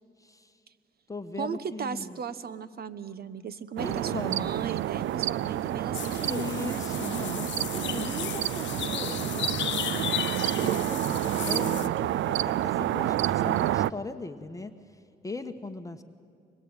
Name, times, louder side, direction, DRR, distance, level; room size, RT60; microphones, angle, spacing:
voice 1, 0.2-0.6 1.1-2.2 3.8-4.5 6.2-10.1 10.6-16.0, left 3 dB, 15° left, 7 dB, 1.3 m, -39 dB
voice 2, 1.4-6.9, right 6 dB, 50° right, 14 dB, 1.2 m, -36 dB
sound 1, 3.8-13.9, right 13 dB, 75° right, 0.5 m, -29 dB
sound 2, 5.9-11.9, left 11 dB, 70° left, 1.1 m, -35 dB
25.0 x 21.5 x 9.0 m, 2.3 s
cardioid pair, 90°, 20 cm